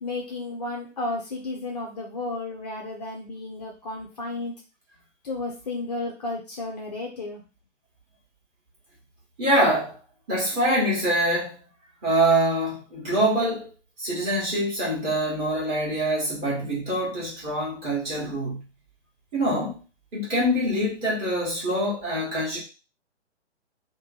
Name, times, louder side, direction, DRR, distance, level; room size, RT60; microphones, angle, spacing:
voice 1, 0.0-4.5 5.2-7.4, left 2 dB, 35° left, 0 dB, 0.7 m, -33 dB
voice 2, 9.4-10.0 10.3-11.6 12.0-13.7 14.0-18.6 19.3-19.8 20.1-22.6, right 1 dB, 15° right, -6 dB, 1.2 m, -24 dB
3.0 x 2.1 x 4.0 m, 0.32 s
figure-of-eight pair, 130°, 37 cm